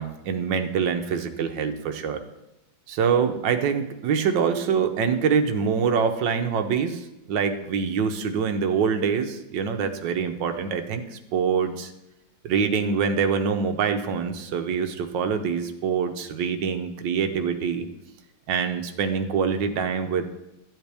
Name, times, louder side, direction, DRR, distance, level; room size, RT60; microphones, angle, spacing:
voice 1, 0.0-2.2 2.9-11.9 12.4-17.9 18.5-20.3, right 6 dB, 70° right, 7 dB, 1.4 m, -25 dB
13.0 x 7.6 x 3.4 m, 0.95 s
omnidirectional pair, 2.2 m